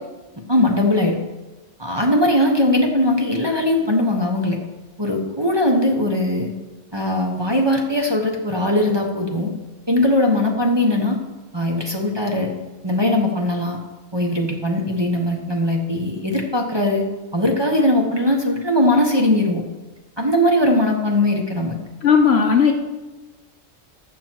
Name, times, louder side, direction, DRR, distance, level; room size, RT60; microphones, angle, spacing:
voice 1, 0.5-1.2 1.8-4.6 5.0-6.5 6.9-9.5 9.9-11.2 11.5-12.5 12.8-13.8 14.1-19.6 20.2-21.8, left 1 dB, 20° right, 0 dB, 1.1 m, -20 dB
voice 2, 22.0-22.7, left 6 dB, 55° left, 4 dB, 1.0 m, -15 dB
15.0 x 6.2 x 4.6 m, 1.2 s
omnidirectional pair, 1.4 m